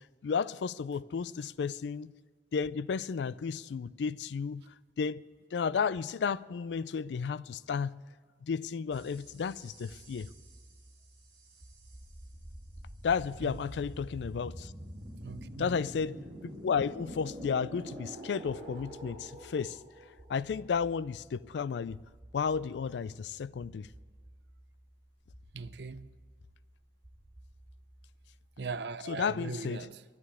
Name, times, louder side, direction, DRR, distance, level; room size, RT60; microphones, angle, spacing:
voice 1, 0.2-2.1 2.5-4.6 5.0-5.2 5.5-8.0 8.4-10.3 13.0-14.7 15.6-16.2 16.4-19.8 20.3-22.0 22.3-23.9 29.1-29.9, left 6 dB, 80° left, 0.4 m, -33 dB
sound 1, 8.9-28.5, equal, 30° right, 2.9 m, -49 dB
voice 2, 15.2-15.8 25.5-26.1 28.6-30.0, right 4 dB, 70° right, 0.6 m, -39 dB
11.5 x 10.5 x 9.7 m
head